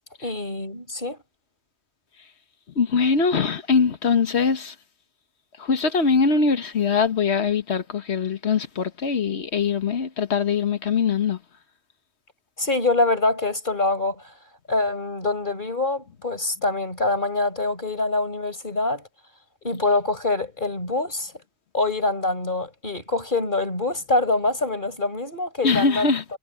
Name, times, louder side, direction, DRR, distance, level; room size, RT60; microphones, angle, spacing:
voice 1, 0.2-1.2 12.6-14.2 14.7-19.0 19.6-21.3 21.7-26.1, left 3 dB, 40° left, 5.0 m, -25 dB
voice 2, 2.8-4.7 5.6-11.4 25.6-26.2, left 5 dB, 60° left, 1.5 m, -22 dB
omnidirectional pair, 1.2 m